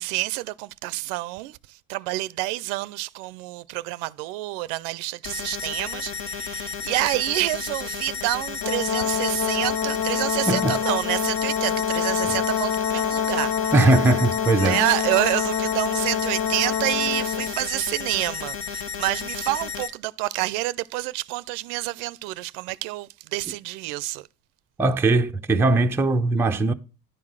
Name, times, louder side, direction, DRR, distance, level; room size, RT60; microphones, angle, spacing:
voice 1, 0.0-13.7 14.6-24.3, right 19 dB, 85° right, 0.5 m, -28 dB
sound 1, 5.2-19.9, left 6 dB, 75° left, 1.7 m, -33 dB
Brass instrument, 8.6-17.6, left 8 dB, 35° left, 0.6 m, -26 dB
voice 2, 13.7-14.8 24.8-26.7, right 2 dB, 5° right, 0.5 m, -20 dB
10.5 x 3.8 x 6.2 m
cardioid pair, 135°, 37 cm